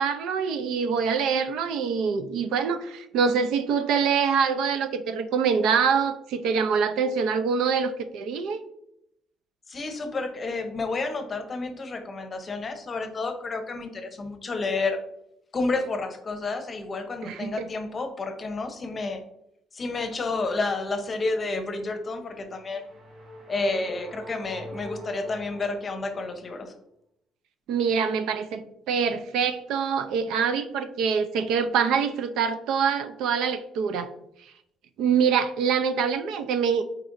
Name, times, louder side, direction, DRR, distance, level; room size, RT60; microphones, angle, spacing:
voice 1, 0.0-8.6 17.2-17.7 27.7-34.1 35.0-36.8, right 6 dB, 80° right, 9 dB, 0.6 m, -25 dB
voice 2, 9.7-15.0 15.5-19.2 19.7-22.8 23.5-26.7, left 3 dB, 25° left, 6 dB, 0.8 m, -30 dB
sound 1, 22.2-26.5, left 1 dB, 45° right, 1.6 m, -43 dB
9.1 x 4.2 x 2.6 m, 0.78 s
cardioid pair, 165°, 0 cm